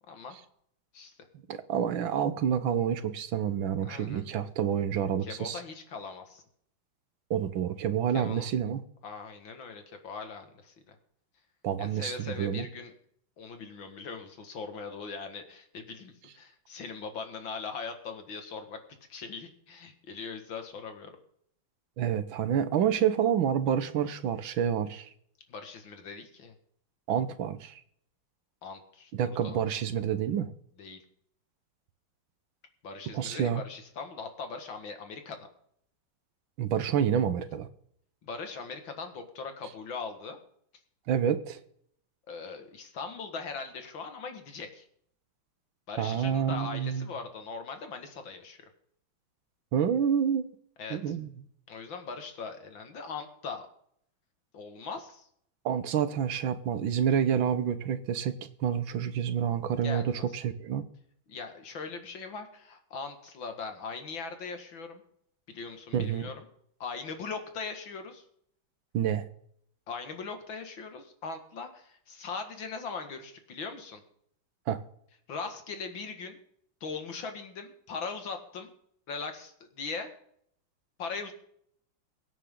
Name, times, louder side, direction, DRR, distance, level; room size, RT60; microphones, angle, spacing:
voice 1, 0.1-0.4 0.9-1.1 3.9-4.2 5.2-6.4 8.1-8.5 9.0-10.9 11.8-12.9 13.4-18.8 19.1-21.1 25.5-26.6 28.6-29.6 30.8-31.0 32.8-35.5 38.2-40.4 42.3-44.8 45.9-48.6 50.8-51.2 51.7-53.7 54.5-55.3 59.8-60.4 61.3-65.0 65.5-66.5 66.8-68.2 69.9-74.0 75.3-76.4 76.8-78.7 79.1-80.1 81.0-81.3, left 5 dB, 75° left, 2.6 m, -40 dB
voice 2, 1.5-5.6 7.3-8.8 11.6-12.7 22.0-25.1 27.1-27.7 29.1-30.5 33.1-33.6 36.6-37.7 41.1-41.6 46.0-47.1 49.7-50.5 50.9-51.3 55.6-60.8 65.9-66.3 68.9-69.3 74.7-74.8, right 8 dB, 80° right, 1.8 m, -28 dB
23.0 x 9.1 x 3.8 m
omnidirectional pair, 2.1 m